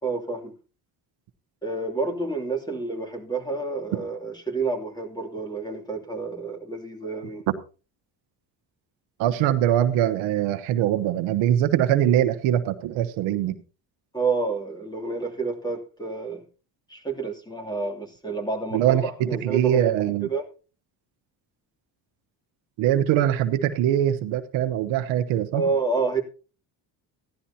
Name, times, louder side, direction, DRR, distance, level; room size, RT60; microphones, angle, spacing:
voice 1, 0.0-0.5 1.6-7.4 14.1-16.4 16.9-19.9 20.2-20.5 25.5-26.2, right 3 dB, 10° left, 2.8 m, -29 dB
voice 2, 9.2-13.6 18.7-20.3 22.8-25.6, right 11 dB, 85° right, 1.1 m, -22 dB
16.0 x 11.5 x 2.8 m
cardioid pair, 95°, 45 cm